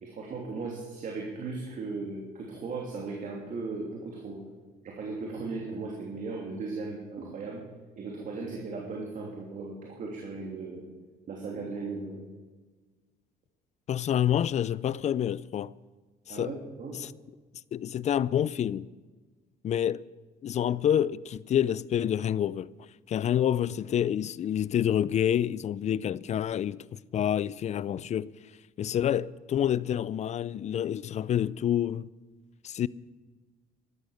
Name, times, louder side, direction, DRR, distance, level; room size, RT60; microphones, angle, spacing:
voice 1, 0.0-4.4 4.8-7.6 8.0-10.8 11.3-12.2 16.3-17.0, right 3 dB, 50° right, 2.9 m, -37 dB
voice 2, 13.9-15.7 16.3-16.5 17.0-17.1 17.7-18.9 19.6-20.0 20.4-22.7 23.1-28.3 28.8-32.1 32.6-32.9, left 10 dB, 45° left, 0.5 m, -28 dB
13.5 x 12.5 x 6.5 m
cardioid pair, 110°, 17 cm